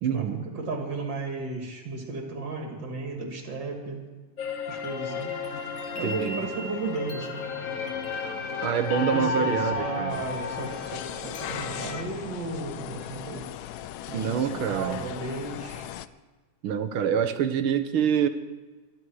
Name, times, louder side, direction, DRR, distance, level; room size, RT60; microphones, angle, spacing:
voice 1, 0.0-0.5 6.0-6.4 8.6-10.2 14.1-15.0 16.6-18.3, right 8 dB, 85° right, 10 dB, 1.8 m, -26 dB
voice 2, 0.5-4.0 4.7-5.3 5.9-7.4 9.0-13.5 14.1-15.9, right 3 dB, 60° right, 2 dB, 3.1 m, -34 dB
sound 1, 4.4-12.0, left 5 dB, 45° left, 1.4 m, -33 dB
sound 2, 10.1-16.1, left 12 dB, 85° left, 0.8 m, -38 dB
22.5 x 10.5 x 4.8 m, 1.4 s
omnidirectional pair, 2.3 m